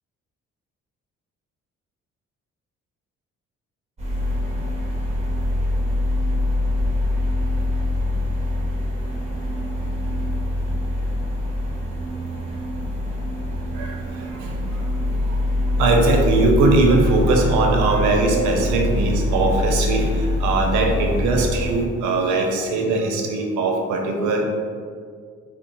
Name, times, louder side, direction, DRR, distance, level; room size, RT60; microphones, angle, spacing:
sound 1, 4.0-21.9, left 1 dB, 20° right, 1.3 m, -24 dB
voice 1, 13.7-14.8 15.2-15.4 15.8-24.4, right 2 dB, 90° right, 2 dB, 0.6 m, -20 dB
3.7 x 2.0 x 4.0 m, 2.1 s
supercardioid pair, 70°, 29 cm